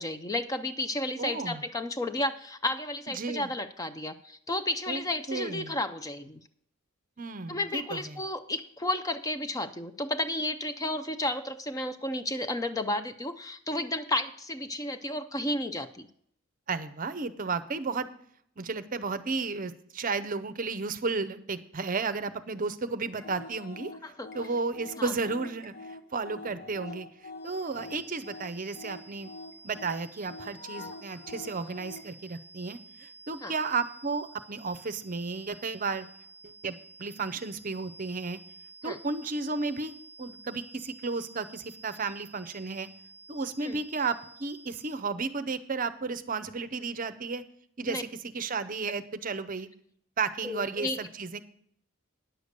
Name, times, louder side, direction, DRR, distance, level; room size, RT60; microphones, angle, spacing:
voice 1, 0.0-6.4 7.5-16.1 24.0-24.3 25.0-25.1 33.4-33.5 38.8-39.0 43.6-43.8 47.9-48.0 50.4-51.0, left 1 dB, 15° left, 9 dB, 0.5 m, -32 dB
voice 2, 1.2-1.6 3.1-3.5 4.9-5.0 5.3-5.8 7.2-8.2 16.7-18.1 18.6-23.9 24.3-27.1 27.4-29.3 29.6-36.1 36.4-38.4 38.8-39.9 40.2-42.9 43.3-47.4 47.8-49.7 50.2-51.4, right 4 dB, 40° right, 13 dB, 0.6 m, -33 dB
sound 1, 23.1-32.1, left 3 dB, 45° left, 1.0 m, -45 dB
sound 2, 27.4-45.1, right 3 dB, 65° left, 1.0 m, -52 dB
10.0 x 6.8 x 6.6 m, 0.67 s
head